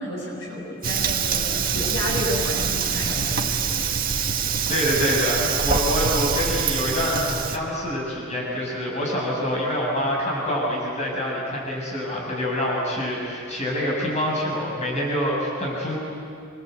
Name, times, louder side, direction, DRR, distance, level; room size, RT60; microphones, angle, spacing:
voice 1, 0.0-3.8, equal, 70° left, -2 dB, 8.0 m, -31 dB
Fire, 0.8-7.6, right 6 dB, 45° right, 1.7 m, -25 dB
voice 2, 4.7-16.0, equal, 35° left, -3 dB, 7.3 m, -26 dB
27.5 x 24.0 x 8.3 m, 2.5 s
head